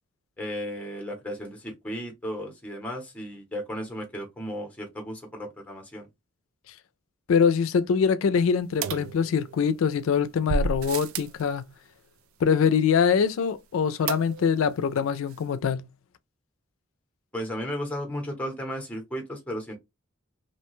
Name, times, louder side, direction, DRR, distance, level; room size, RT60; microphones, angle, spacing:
voice 1, 0.4-6.1 17.3-19.8, equal, 5° left, 0.7 m, -34 dB
voice 2, 7.3-11.6 12.4-15.8, left 6 dB, 80° left, 0.3 m, -23 dB
sound 1, 8.8-9.8 10.5-11.4 14.1-14.7 15.0-15.1 15.3-15.4, right 4 dB, 90° right, 0.3 m, -31 dB
2.7 x 2.1 x 2.9 m
head